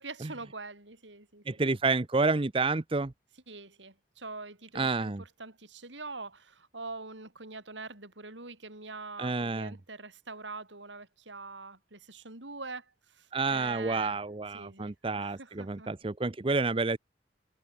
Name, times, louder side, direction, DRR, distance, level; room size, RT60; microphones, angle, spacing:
voice 1, 0.0-1.4 3.5-14.2 14.5-15.9, right 3 dB, 90° right, 7.2 m, -44 dB
voice 2, 1.5-3.1 4.7-5.2 9.2-9.8 13.3-17.0, right 3 dB, 30° right, 0.7 m, -29 dB
head